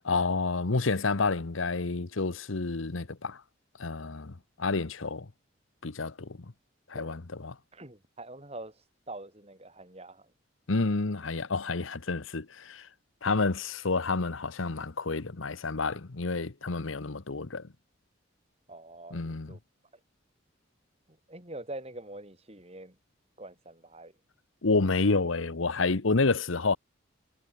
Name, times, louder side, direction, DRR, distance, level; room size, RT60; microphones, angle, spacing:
voice 1, 0.0-3.4 3.8-4.3 4.6-5.3 5.8-6.3 6.9-7.5 10.7-12.9 13.2-17.6 19.1-19.5 24.6-26.8, left 3 dB, 85° left, 1.1 m, -29 dB
voice 2, 7.7-10.3 18.7-19.6 21.1-23.0 23.4-24.1, right 2 dB, 30° right, 6.1 m, -45 dB
head